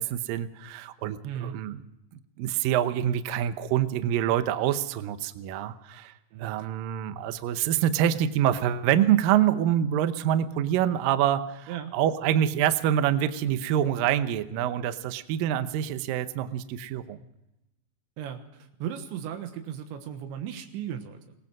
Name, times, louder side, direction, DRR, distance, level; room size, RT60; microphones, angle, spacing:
voice 1, 0.0-1.8 2.4-6.1 6.4-17.2, right 10 dB, 75° right, 10 dB, 2.2 m, -26 dB
voice 2, 1.2-1.6 6.3-6.5 11.7-11.9 18.2-21.4, right 9 dB, 90° right, 6 dB, 3.7 m, -36 dB
23.0 x 19.0 x 6.1 m, 0.91 s
omnidirectional pair, 5.1 m